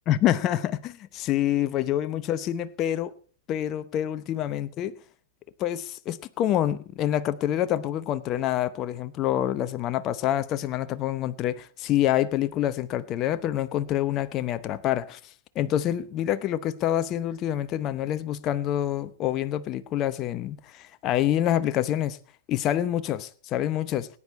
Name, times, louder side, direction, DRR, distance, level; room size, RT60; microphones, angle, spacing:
voice 1, 0.1-3.1 3.5-5.0 5.6-15.2 15.6-22.2 22.5-24.1, left 12 dB, 35° left, 0.8 m, -27 dB
18.5 x 9.9 x 4.2 m
hypercardioid pair, 105°, 0 cm